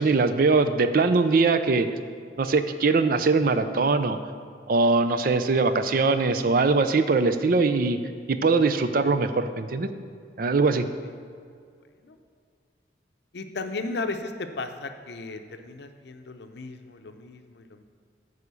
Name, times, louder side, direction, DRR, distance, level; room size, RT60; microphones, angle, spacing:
voice 1, 0.0-1.9 2.4-4.2 4.7-8.0 8.3-9.9 10.4-10.9, right 3 dB, 50° right, 10 dB, 0.4 m, -22 dB
voice 2, 13.3-17.8, left 3 dB, 65° left, 7 dB, 0.6 m, -35 dB
9.3 x 4.9 x 6.9 m, 2.2 s
head